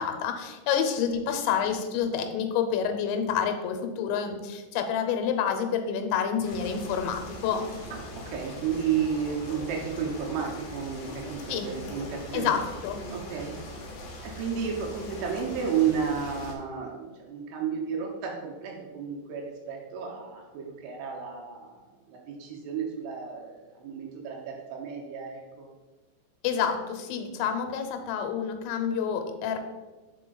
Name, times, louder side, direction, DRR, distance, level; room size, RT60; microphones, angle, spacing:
voice 1, 0.0-7.7 11.5-11.7 12.3-13.0 26.4-29.6, left 7 dB, 90° left, 6 dB, 3.0 m, -28 dB
sound 1, 6.4-16.5, left 2 dB, 70° left, 2.1 m, -41 dB
voice 2, 7.9-12.5 13.1-13.6 14.2-25.7, right 7 dB, 80° right, -1 dB, 2.7 m, -32 dB
5.4 x 4.8 x 3.8 m, 1.2 s
omnidirectional pair, 5.1 m